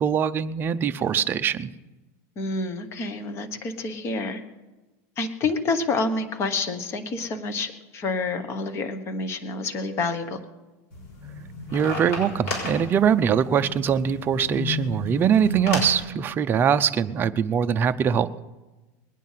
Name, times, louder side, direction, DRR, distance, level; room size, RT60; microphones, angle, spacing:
voice 1, 0.0-1.7 11.7-18.3, right 7 dB, 25° right, 10 dB, 0.5 m, -22 dB
voice 2, 2.4-4.4 5.2-10.4, left 3 dB, 30° left, 8 dB, 1.2 m, -28 dB
sound 1, 10.9-16.0, left 1 dB, 70° left, 5.9 m, -32 dB
21.0 x 9.2 x 5.7 m, 1.2 s
supercardioid pair, 150°, 9 cm